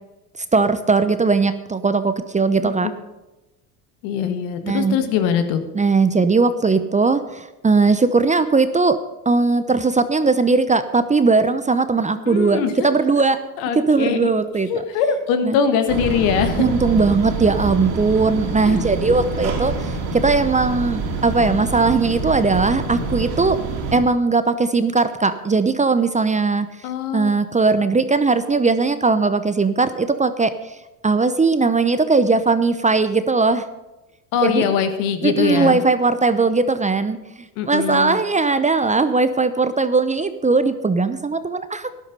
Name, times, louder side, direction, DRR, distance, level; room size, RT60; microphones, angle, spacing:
voice 1, 0.5-2.9 4.6-5.0 5.7-9.0 9.3-13.4 13.8-14.7 15.4-15.6 16.6-23.6 23.9-26.7 27.1-30.5 31.0-33.7 34.4-34.7 35.2-41.9, right 4 dB, 15° right, 12 dB, 0.7 m, -19 dB
voice 2, 2.6-2.9 4.0-5.6 12.3-12.9 13.6-14.3 14.7-16.6 18.7-18.8 26.8-27.3 34.3-35.8 37.6-38.2, left 7 dB, 70° left, 8 dB, 1.8 m, -22 dB
sound 1, 15.9-24.0, right 3 dB, 70° right, 3.2 m, -26 dB
13.0 x 11.0 x 5.4 m, 1.0 s
hypercardioid pair, 80°, 46 cm